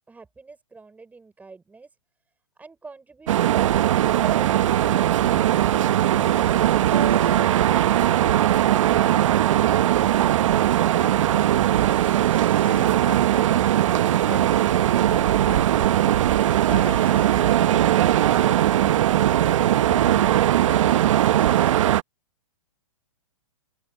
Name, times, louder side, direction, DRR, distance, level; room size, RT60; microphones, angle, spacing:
voice 1, 0.1-1.9 2.6-5.7, right 4 dB, 10° right, 6.2 m, -45 dB
sound 1, 3.3-22.0, right 12 dB, 60° right, 1.0 m, -19 dB
sound 2, 4.2-21.7, left 5 dB, 10° left, 3.1 m, -43 dB
sound 3, 6.9-10.8 11.2-11.8 12.1-12.9, right 8 dB, 85° right, 2.6 m, -33 dB
voice 2, 10.9-12.0 12.6-13.7 13.9-19.0 19.6-21.3, left 16 dB, 50° left, 6.6 m, -42 dB
hypercardioid pair, 135°, 18 cm